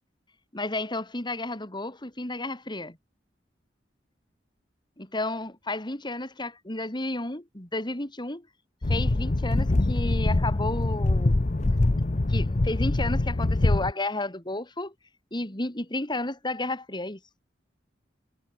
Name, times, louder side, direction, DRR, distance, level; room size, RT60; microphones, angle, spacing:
voice 1, 0.5-3.0 5.0-8.5 8.9-11.4 11.9-12.0 12.3-14.9 15.3-17.2, left 2 dB, 25° left, 3.7 m, -32 dB
sound 1, 8.8-13.9, left 2 dB, 40° left, 0.8 m, -24 dB
head